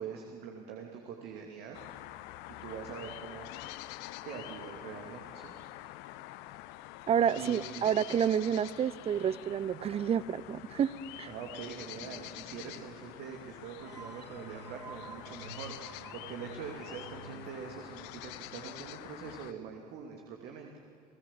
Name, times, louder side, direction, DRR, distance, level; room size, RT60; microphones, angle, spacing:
voice 1, 0.0-1.8 2.6-3.5 4.2-5.5 7.4-7.9 11.3-20.7, right 7 dB, 55° right, 2 dB, 2.7 m, -44 dB
sound 1, 1.7-19.5, left 16 dB, 55° left, 0.9 m, -46 dB
voice 2, 7.1-11.3, right 8 dB, 30° right, 19 dB, 0.7 m, -29 dB
sound 2, 13.8-19.3, right 4 dB, 85° right, 1.0 m, -51 dB
30.0 x 19.0 x 7.5 m, 2.4 s
figure-of-eight pair, 60°, 21 cm